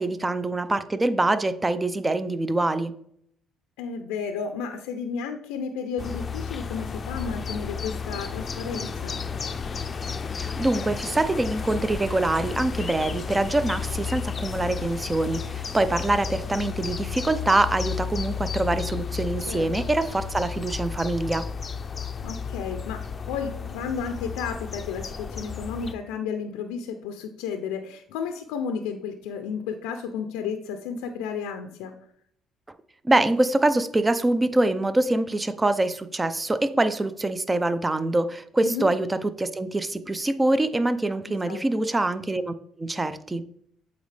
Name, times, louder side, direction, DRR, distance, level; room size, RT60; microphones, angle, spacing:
voice 1, 0.0-2.9 10.4-21.5 33.0-42.5 42.8-43.4, right 2 dB, 20° right, 13 dB, 0.5 m, -24 dB
voice 2, 3.8-9.2 19.5-19.7 22.2-23.0 23.3-31.9 38.6-38.9 41.3-41.9, left 6 dB, 90° left, 7 dB, 0.5 m, -32 dB
sound 1, 6.0-25.9, left 6 dB, 40° left, 0.5 m, -33 dB
8.0 x 4.0 x 3.3 m, 0.67 s
supercardioid pair, 70°, 0 cm